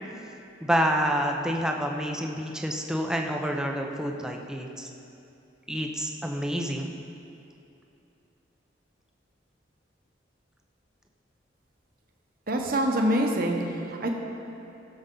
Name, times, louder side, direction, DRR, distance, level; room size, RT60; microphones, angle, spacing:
voice 1, 0.6-4.9 5.7-6.9, equal, 5° right, 1 dB, 0.7 m, -28 dB
voice 2, 12.5-14.1, right 1 dB, 50° right, 1 dB, 1.1 m, -25 dB
16.5 x 7.1 x 3.9 m, 2.8 s
head